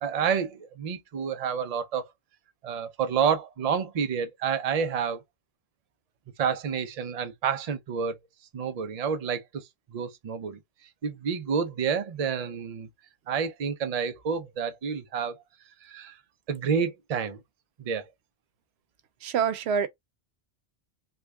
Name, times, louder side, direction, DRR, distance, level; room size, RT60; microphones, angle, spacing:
voice 1, 0.0-2.1 2.6-5.2 6.4-8.2 8.5-10.6 11.0-12.9 13.3-15.4 15.8-16.2 16.5-17.4 17.8-18.1, right 6 dB, 45° right, 0.6 m, -29 dB
voice 2, 19.2-19.9, right 7 dB, 90° right, 0.9 m, -26 dB
3.3 x 2.4 x 3.4 m
omnidirectional pair, 1.0 m